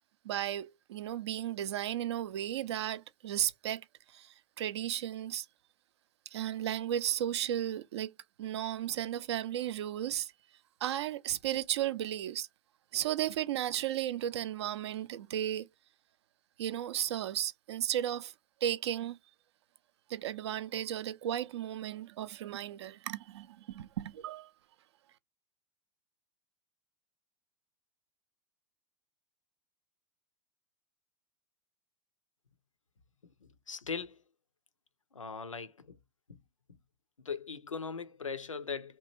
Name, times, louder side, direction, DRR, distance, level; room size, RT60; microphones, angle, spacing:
voice 1, 0.2-3.8 4.1-5.5 6.3-8.1 8.4-10.3 10.8-12.5 12.9-15.7 16.6-18.3 18.6-19.2 20.1-24.5, right 11 dB, 60° right, 0.4 m, -34 dB
voice 2, 33.4-34.2 35.1-36.0 36.3-36.4 37.2-39.0, left 5 dB, 85° left, 0.5 m, -39 dB
2.9 x 2.3 x 2.9 m
figure-of-eight pair, 95°, 16 cm